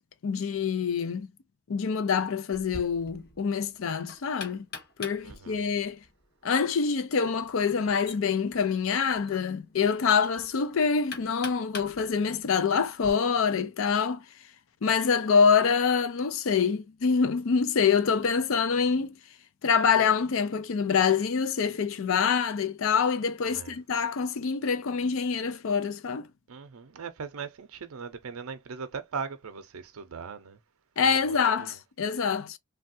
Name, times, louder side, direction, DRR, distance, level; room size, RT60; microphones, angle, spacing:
voice 1, 0.2-1.3 1.7-4.7 5.0-6.0 6.4-14.2 14.8-19.1 19.6-26.3 31.0-32.6, left 6 dB, 65° left, 0.4 m, -25 dB
Knock, 2.5-13.1, left 3 dB, 45° left, 1.1 m, -45 dB
voice 2, 5.2-5.6 23.5-23.7 26.5-30.6 31.0-31.7, right 5 dB, 75° right, 0.5 m, -39 dB
3.3 x 2.3 x 2.6 m
head